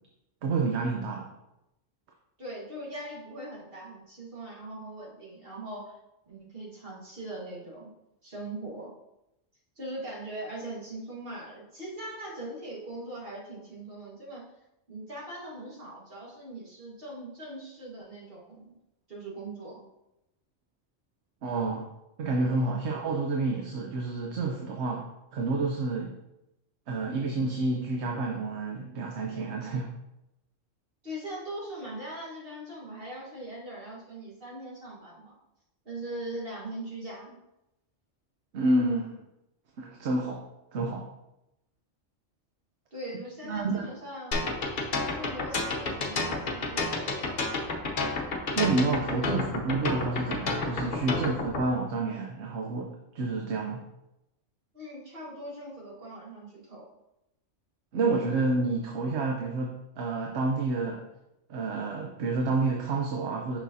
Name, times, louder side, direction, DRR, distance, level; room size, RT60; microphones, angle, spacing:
voice 1, 0.4-1.3 21.4-21.9 22.2-25.1 25.3-26.1 26.9-29.9 38.5-39.2 39.8-41.1 43.5-43.9 48.5-53.8 57.9-61.0 61.5-63.6, right 3 dB, 65° right, 1 dB, 1.0 m, -29 dB
voice 2, 2.4-6.0 6.3-7.9 8.2-8.9 9.8-14.5 14.9-18.7 19.1-19.8 22.4-22.8 31.0-35.3 35.9-37.4 42.9-44.5 45.2-47.7 54.7-56.9, right 1 dB, 50° right, -5 dB, 1.9 m, -41 dB
sound 1, 44.3-51.6, left 3 dB, 45° left, 0.9 m, -30 dB
6.2 x 6.1 x 2.7 m, 0.89 s
omnidirectional pair, 1.3 m